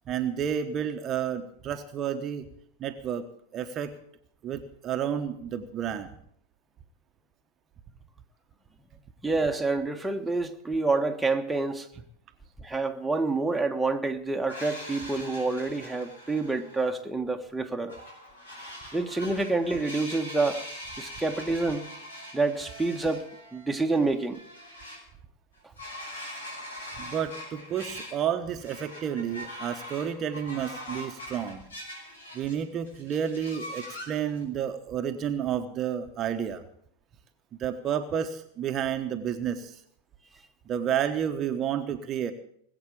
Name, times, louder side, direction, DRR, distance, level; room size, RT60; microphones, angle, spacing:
voice 1, 0.1-2.5 2.8-3.3 3.5-3.9 4.4-6.1 27.0-31.6 32.3-36.6 37.6-39.8 40.7-42.3, right 9 dB, 30° right, 1.1 m, -31 dB
voice 2, 9.2-11.9 12.6-17.9 18.9-20.6 21.0-21.9 22.3-23.3 23.5-24.4, right 3 dB, 5° right, 1.4 m, -28 dB
sound 1, 14.5-16.9 17.9-25.0 25.6-28.3 28.5-32.6 32.9-34.4, equal, 75° left, 5.7 m, -42 dB
20.0 x 8.0 x 8.4 m
figure-of-eight pair, 90°, 0 cm